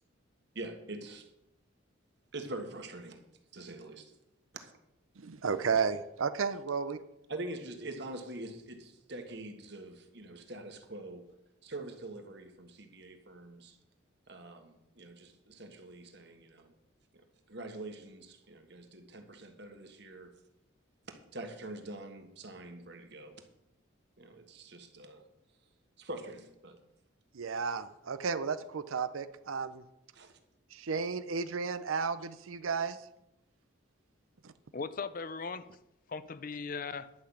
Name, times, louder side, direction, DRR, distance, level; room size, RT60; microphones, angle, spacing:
voice 1, 0.5-1.3 2.3-3.2 3.5-4.1 4.5-4.7 7.3-11.3 11.6-13.8 14.3-16.7 17.5-20.3 21.1-23.4 24.2-25.2 26.0-26.8 30.1-30.4, right 2 dB, 55° right, 1.5 m, -44 dB
voice 2, 5.2-7.0 27.3-29.8 30.7-33.0 34.4-34.5, right 5 dB, 90° right, 0.6 m, -33 dB
voice 3, 34.7-35.8 36.1-37.1, left 4 dB, 45° left, 0.5 m, -38 dB
11.5 x 5.9 x 8.3 m
head